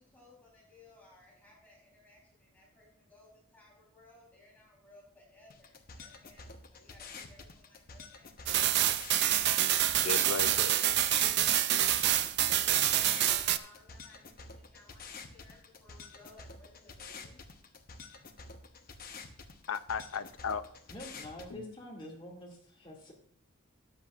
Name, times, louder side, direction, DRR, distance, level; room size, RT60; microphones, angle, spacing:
voice 1, 0.0-8.5 12.7-17.4, left 2 dB, 10° left, -5 dB, 3.7 m, -60 dB
sound 1, 5.5-21.5, left 4 dB, 45° left, 0.9 m, -49 dB
sound 2, 8.5-13.6, right 12 dB, 55° right, 0.4 m, -27 dB
voice 2, 10.0-10.8 19.7-20.6 21.5-21.7, left 6 dB, 80° left, 12 dB, 0.5 m, -35 dB
voice 3, 20.9-23.1, left 1 dB, 25° left, -2 dB, 2.3 m, -46 dB
13.5 x 10.0 x 2.5 m, 0.62 s
head